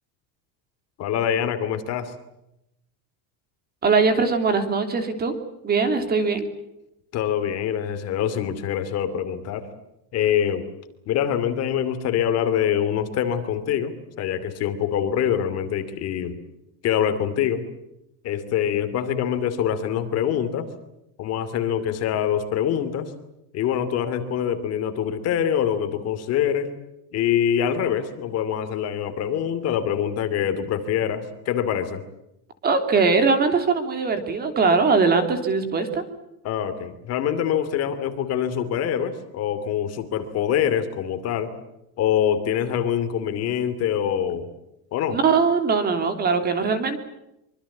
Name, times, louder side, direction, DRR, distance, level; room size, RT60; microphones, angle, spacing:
voice 1, 1.0-2.1 7.1-9.7 10.1-10.7 11.1-16.4 16.8-17.6 18.2-20.7 21.2-23.1 23.5-26.7 27.1-32.0 36.4-41.5 42.0-44.5 44.9-45.2, left 9 dB, 35° left, 10 dB, 2.8 m, -24 dB
voice 2, 3.8-5.3 5.6-6.5 32.6-36.0 45.1-47.0, right 4 dB, 20° right, 7 dB, 3.3 m, -21 dB
25.5 x 25.5 x 8.4 m, 0.86 s
cardioid pair, 180°, 43 cm